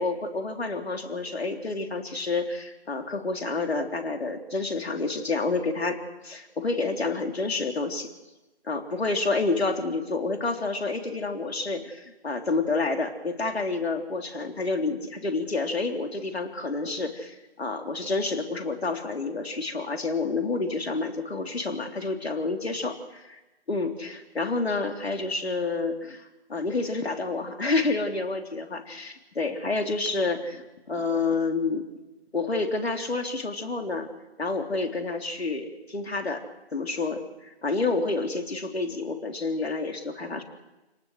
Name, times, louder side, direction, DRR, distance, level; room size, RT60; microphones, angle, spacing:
voice 1, 0.0-8.1 8.7-22.9 23.7-31.9 32.3-34.1 34.4-36.4 36.7-40.4, left 3 dB, 70° left, 4 dB, 3.6 m, -29 dB
27.5 x 19.0 x 6.6 m, 1.0 s
figure-of-eight pair, 165°, 33 cm